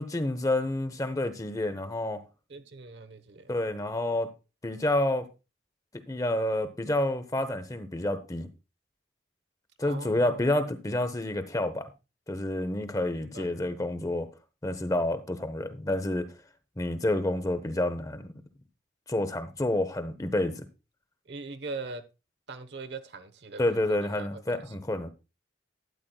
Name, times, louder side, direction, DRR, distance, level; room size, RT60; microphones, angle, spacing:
voice 1, 0.0-2.2 3.5-4.3 4.6-5.3 6.1-8.5 9.8-11.9 12.3-14.3 14.6-16.3 16.8-18.3 19.1-20.7 23.6-25.1, left 1 dB, 20° left, 0.8 m, -29 dB
voice 2, 2.5-3.5 9.8-10.4 13.2-13.5 21.2-22.0 22.5-24.7, right 3 dB, 65° right, 1.0 m, -41 dB
12.5 x 9.4 x 2.3 m
head